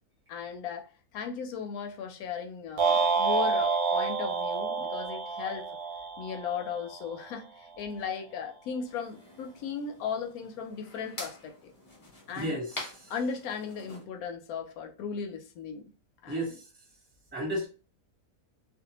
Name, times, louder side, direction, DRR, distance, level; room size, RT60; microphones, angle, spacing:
voice 1, 0.3-5.7 6.2-11.7 12.3-12.6 13.1-15.9 16.2-16.4, left 6 dB, 75° left, 1.0 m, -36 dB
sound 1, 2.8-7.1, right 4 dB, 90° right, 1.1 m, -28 dB
sound 2, 8.9-14.0, left 2 dB, 40° left, 0.4 m, -46 dB
voice 2, 12.3-13.1 16.3-16.6 17.3-17.7, equal, 10° right, 0.9 m, -33 dB
2.6 x 2.3 x 2.8 m
omnidirectional pair, 1.6 m